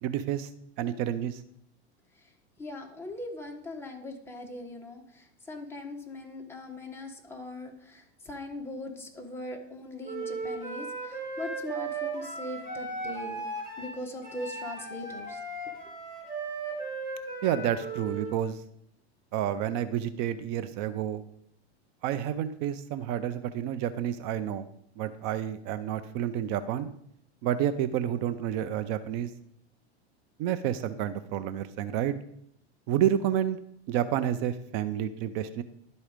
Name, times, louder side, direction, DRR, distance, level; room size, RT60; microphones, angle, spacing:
voice 1, 0.0-0.5 0.8-1.4 17.4-18.6 19.3-21.2 22.0-24.7 25.0-26.9 27.4-29.3 30.4-32.1 32.9-33.6 33.9-35.6, right 10 dB, 40° right, 12 dB, 0.5 m, -29 dB
voice 2, 2.6-13.4 13.8-15.4, left 1 dB, 5° left, 1 dB, 1.2 m, -40 dB
Wind instrument woodwind instrument, 10.0-18.4, right 3 dB, 10° right, 2.8 m, -36 dB
11.5 x 4.1 x 5.0 m, 0.71 s
supercardioid pair, 135°, 33 cm